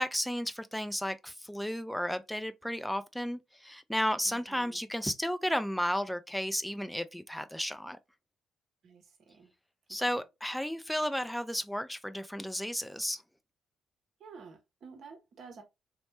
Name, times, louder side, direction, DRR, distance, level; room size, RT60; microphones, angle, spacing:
voice 1, 0.0-8.0 9.9-13.2, equal, 5° left, 0.4 m, -33 dB
voice 2, 4.3-4.8 8.8-9.5 14.2-15.6, right 5 dB, 60° right, 0.7 m, -51 dB
3.1 x 2.1 x 2.9 m
hypercardioid pair, 45°, 0 cm